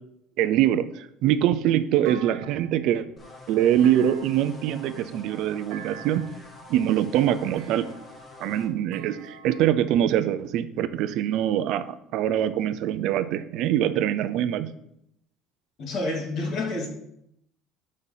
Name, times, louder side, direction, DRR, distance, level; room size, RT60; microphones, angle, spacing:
voice 1, 0.4-3.1 3.5-6.2 6.7-7.9 8.4-14.7, right 11 dB, 60° right, 11 dB, 0.5 m, -24 dB
Thump thud, 2.0-3.0 3.8-4.7 5.7-6.5 7.6-8.3 8.9-9.9, right 8 dB, 80° right, 0.9 m, -45 dB
sound 1, 3.2-8.7, left 2 dB, 20° left, 1.2 m, -46 dB
voice 2, 15.8-16.9, left 2 dB, 50° left, 0 dB, 2.3 m, -28 dB
6.5 x 5.3 x 5.7 m, 0.76 s
cardioid pair, 145°, 0 cm